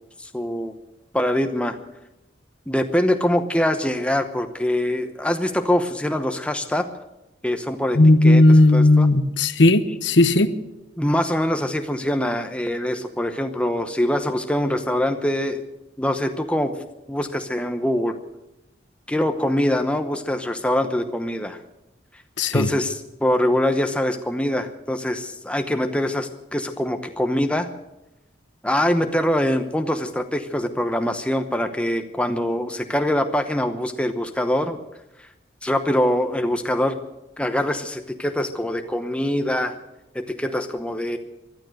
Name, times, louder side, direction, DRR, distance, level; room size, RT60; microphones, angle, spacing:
voice 1, 0.2-0.7 1.1-1.8 2.7-6.9 7.4-9.1 11.0-15.6 16.0-18.2 19.1-21.6 22.5-27.7 28.6-34.8 35.6-37.0 37.4-39.8 40.1-41.2, left 1 dB, 5° left, 7 dB, 0.8 m, -24 dB
voice 2, 8.0-10.5 22.4-22.7, left 2 dB, 70° left, 12 dB, 1.0 m, -15 dB
15.5 x 12.0 x 7.8 m, 0.94 s
head